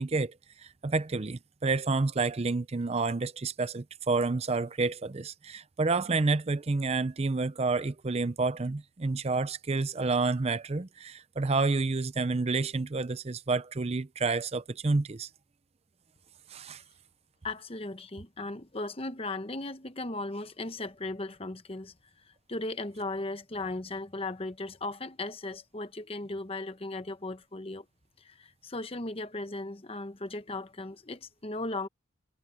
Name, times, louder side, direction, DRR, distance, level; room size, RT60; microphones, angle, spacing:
voice 1, 0.0-15.3 16.5-16.8, right 3 dB, 35° right, 0.5 m, -29 dB
voice 2, 17.4-21.9 22.3-27.8 28.2-31.9, left 2 dB, 30° left, 1.0 m, -37 dB
head